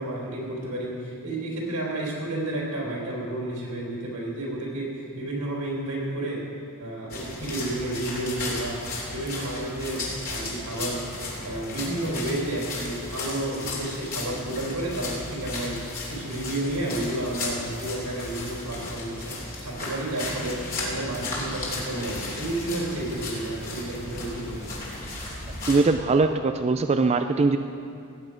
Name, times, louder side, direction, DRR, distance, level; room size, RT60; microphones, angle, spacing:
voice 1, 0.0-6.5 6.8-8.8 9.1-11.1 11.4-24.8, right 1 dB, 90° right, -3 dB, 4.0 m, -31 dB
sound 1, 7.1-25.9, left 2 dB, 40° left, 3.0 m, -35 dB
voice 2, 25.7-27.6, right 3 dB, 30° right, 8 dB, 0.4 m, -21 dB
18.0 x 8.8 x 5.1 m, 2.4 s
head